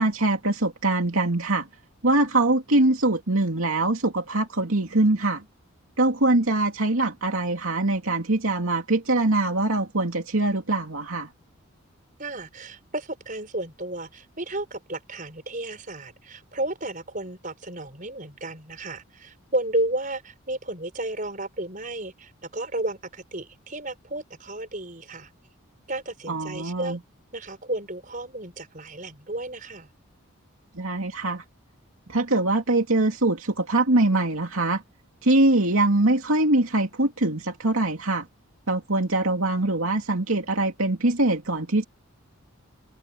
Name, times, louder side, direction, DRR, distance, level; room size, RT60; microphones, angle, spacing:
voice 1, 0.0-1.7 2.0-5.4 6.0-11.3 26.3-27.0 30.7-31.4 32.1-34.8 35.2-38.3 38.7-41.8, right 2 dB, 70° right, 2.6 m, -23 dB
voice 2, 12.2-25.3 25.9-27.0 27.3-29.9, right 1 dB, 35° right, 5.3 m, -32 dB
open air
head